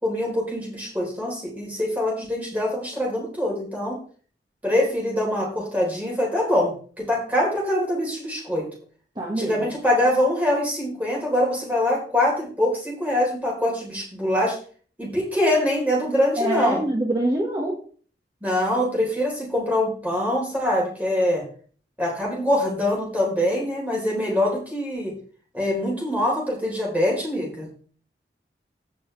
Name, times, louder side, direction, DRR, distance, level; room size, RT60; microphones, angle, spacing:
voice 1, 0.0-4.0 4.6-8.7 9.4-14.6 15.0-16.8 18.4-21.4 22.0-25.1 25.5-27.7, left 1 dB, 10° right, -3 dB, 4.2 m, -24 dB
voice 2, 9.2-9.7 16.4-17.7, right 1 dB, 25° right, -1 dB, 1.6 m, -24 dB
15.5 x 6.2 x 3.4 m, 0.44 s
head